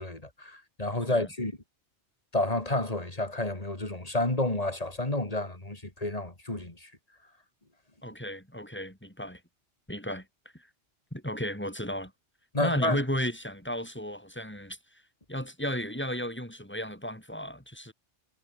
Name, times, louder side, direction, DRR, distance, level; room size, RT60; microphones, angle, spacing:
voice 1, 0.0-1.5 2.3-6.9 12.5-13.0, left 2 dB, 35° left, 3.5 m, -30 dB
voice 2, 8.0-9.4 9.9-10.3 10.5-10.7 11.1-12.1 12.6-14.8 15.3-17.9, equal, 10° left, 7.8 m, -34 dB
omnidirectional pair, 1.2 m